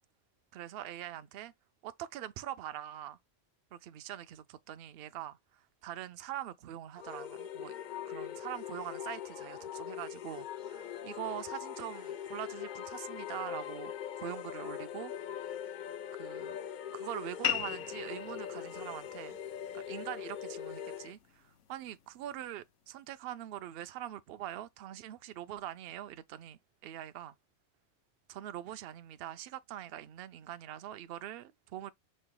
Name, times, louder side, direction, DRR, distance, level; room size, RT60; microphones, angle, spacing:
voice 1, 0.5-1.5 1.8-3.2 3.7-7.7 8.1-15.1 16.1-16.6 16.9-19.4 19.7-27.3 28.3-31.9, right 12 dB, 60° right, 0.6 m, -43 dB
sound 1, 7.0-21.1, left 10 dB, 60° left, 0.5 m, -42 dB
sound 2, 17.4-22.5, left 11 dB, 75° left, 1.0 m, -40 dB
5.3 x 3.2 x 2.2 m
omnidirectional pair, 1.3 m